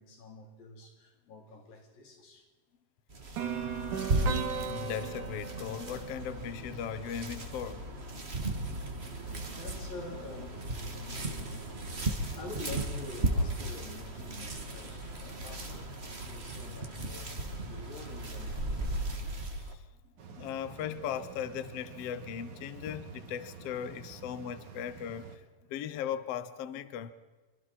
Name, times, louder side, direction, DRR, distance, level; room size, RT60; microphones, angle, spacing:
voice 1, 0.0-2.5 8.2-8.4 8.7-9.0 9.5-11.7 12.1-19.1 24.7-24.8, left 3 dB, 90° left, 5.5 m, -47 dB
sound 1, 3.1-19.7, right 2 dB, 25° right, 1.6 m, -36 dB
sound 2, 3.4-7.3, right 6 dB, 65° right, 3.2 m, -37 dB
voice 2, 4.6-7.8 19.5-19.8 20.4-25.4 25.7-27.1, left 9 dB, 60° left, 1.7 m, -38 dB
sound 3, 20.2-25.4, right 6 dB, 85° right, 4.1 m, -49 dB
26.5 x 25.0 x 4.4 m
omnidirectional pair, 3.9 m